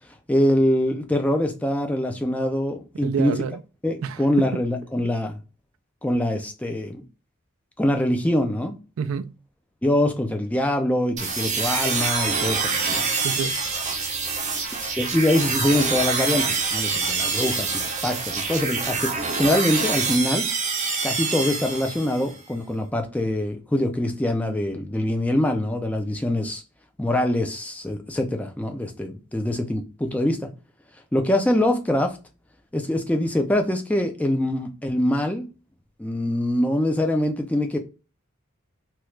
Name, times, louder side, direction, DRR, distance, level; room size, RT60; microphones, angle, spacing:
voice 1, 0.3-3.3 3.8-5.4 6.0-7.0 7.8-8.8 9.8-13.1 15.0-20.5 21.0-26.6 27.0-30.5 31.1-32.2 32.7-35.5 36.0-37.8, left 1 dB, 5° left, 0.4 m, -24 dB
voice 2, 3.0-3.6 4.0-4.5 9.0-9.3 13.2-13.9, right 6 dB, 75° right, 0.3 m, -28 dB
sound 1, 11.2-22.3, right 4 dB, 35° right, 0.6 m, -26 dB
3.0 x 2.3 x 3.1 m
head